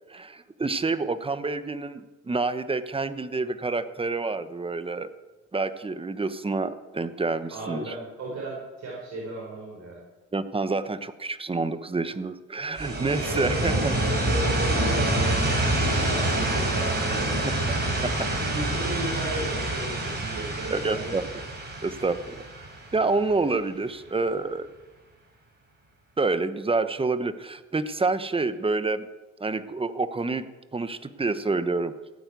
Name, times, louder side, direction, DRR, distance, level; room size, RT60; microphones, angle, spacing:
voice 1, 0.1-5.1 5.5-7.9 10.3-13.9 17.7-17.8 18.0-18.3 20.7-21.4 21.8-22.3 22.9-24.7 26.2-29.1 29.4-30.5 30.7-31.9, right 3 dB, 20° right, 12 dB, 1.0 m, -28 dB
voice 2, 7.5-10.0 13.2-17.3 18.5-21.2, right 2 dB, 60° right, -3 dB, 4.8 m, -35 dB
sound 1, 12.8-23.5, right 1 dB, 35° right, 5.8 m, -27 dB
16.0 x 9.3 x 8.3 m, 1.2 s
cardioid pair, 90°, 30 cm